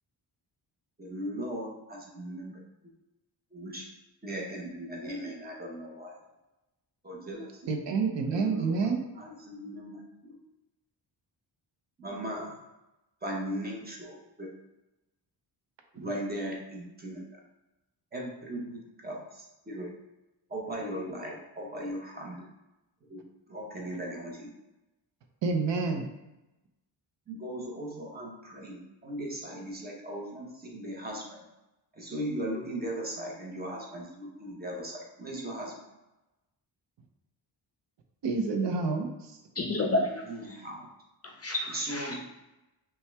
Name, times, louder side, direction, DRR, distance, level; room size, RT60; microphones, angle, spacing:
voice 1, 1.0-2.6 3.5-3.9 4.2-6.2 7.0-7.5 8.3-10.4 12.0-12.5 13.2-14.5 15.9-17.2 18.1-19.9 20.5-22.5 23.1-23.2 23.5-24.5 27.3-31.4 31.9-35.7 40.3-40.8 41.7-42.2, right 1 dB, 20° right, -2 dB, 0.9 m, -38 dB
voice 2, 7.6-9.1 25.4-26.1 38.2-39.4, right 4 dB, 70° right, 4 dB, 0.7 m, -28 dB
voice 3, 39.6-40.6 41.2-42.2, left 2 dB, 35° left, 2 dB, 0.5 m, -31 dB
5.5 x 2.3 x 3.3 m, 0.97 s
wide cardioid pair, 155°, 45 cm